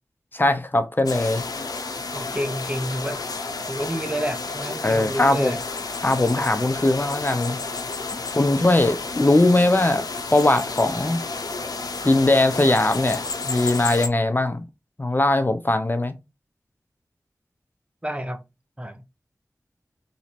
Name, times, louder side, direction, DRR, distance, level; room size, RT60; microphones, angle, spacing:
voice 1, 0.3-1.4 4.8-5.6 6.0-7.6 8.3-11.2 12.0-14.6 15.0-16.2, left 2 dB, 30° left, 0.6 m, -20 dB
sound 1, 1.1-14.1, left 3 dB, 85° left, 0.6 m, -31 dB
voice 2, 2.1-3.2 3.7-5.6 18.0-18.4 18.8-19.1, equal, 20° right, 0.6 m, -29 dB
3.0 x 2.7 x 4.3 m
cardioid pair, 45°, 6 cm